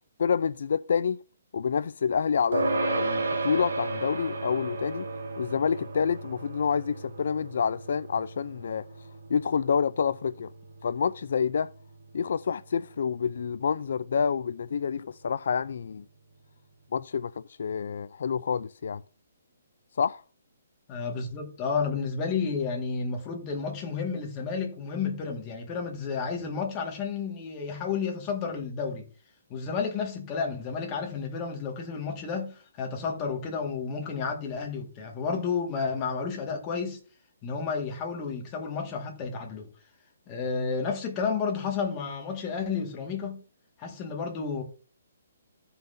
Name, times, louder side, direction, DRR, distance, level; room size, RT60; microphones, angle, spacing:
voice 1, 0.2-1.2 1.5-5.1 5.4-8.8 9.3-10.5 10.8-11.7 12.1-16.0 16.9-19.0 20.0-20.2, left 6 dB, 65° left, 0.3 m, -28 dB
sound 1, 2.5-12.2, right 3 dB, 90° right, 3.0 m, -34 dB
voice 2, 20.9-29.1 29.5-37.0 37.4-39.7 40.3-43.4 43.8-44.6, left 5 dB, 20° left, 1.8 m, -31 dB
16.0 x 5.6 x 2.7 m
hypercardioid pair, 165°, 0 cm